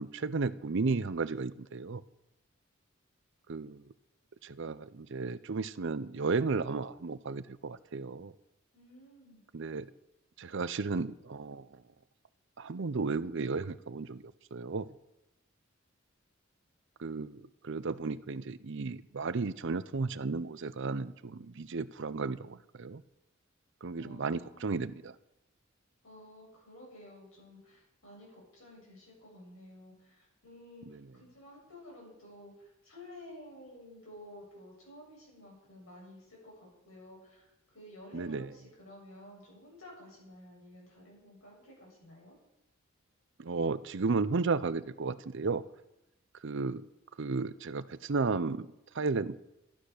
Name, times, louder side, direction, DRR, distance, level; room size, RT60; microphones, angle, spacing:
voice 1, 0.0-2.0 3.5-3.8 4.4-8.3 9.5-9.9 10.4-11.7 12.6-14.2 14.5-14.9 17.0-23.0 23.8-25.1 30.9-31.0 38.1-38.5 43.4-45.6 46.4-46.8 47.2-48.7 48.9-49.4, right 4 dB, 60° right, 0.6 m, -34 dB
voice 2, 8.7-9.4 23.9-24.8 26.0-30.9 31.1-42.4, left 1 dB, 85° left, 7.5 m, -52 dB
13.0 x 12.0 x 6.6 m
head